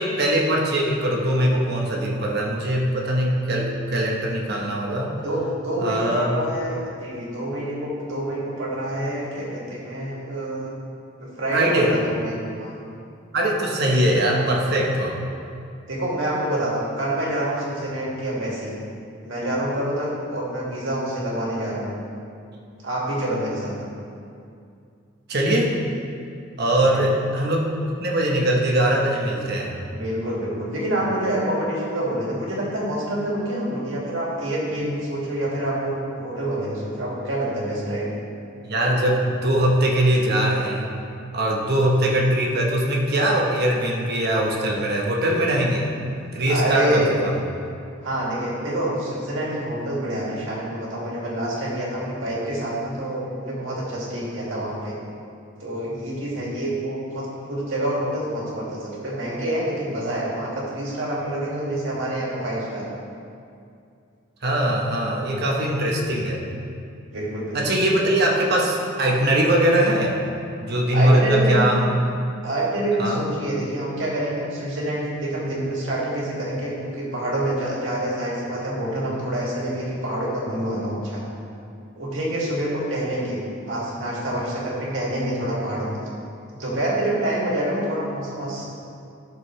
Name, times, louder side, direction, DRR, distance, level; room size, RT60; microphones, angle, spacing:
voice 1, 0.0-5.2 5.8-6.4 11.5-12.0 13.3-15.2 25.3-25.8 26.6-29.7 38.6-40.9 41.3-45.9 46.3-47.3 64.4-66.4 67.5-70.1 70.6-72.0 73.0-73.2, right 1 dB, 55° right, -1 dB, 1.2 m, -21 dB
voice 2, 5.2-10.7 11.2-12.8 15.9-18.7 19.2-21.9 22.8-23.8 26.8-27.0 29.9-38.2 46.5-47.1 48.0-55.0 55.6-62.9 67.1-67.6 70.9-71.7 72.4-81.2 81.9-83.4 83.7-86.0 86.6-88.6, right 1 dB, 75° right, -5 dB, 2.4 m, -27 dB
12.5 x 6.7 x 3.3 m, 2.4 s
head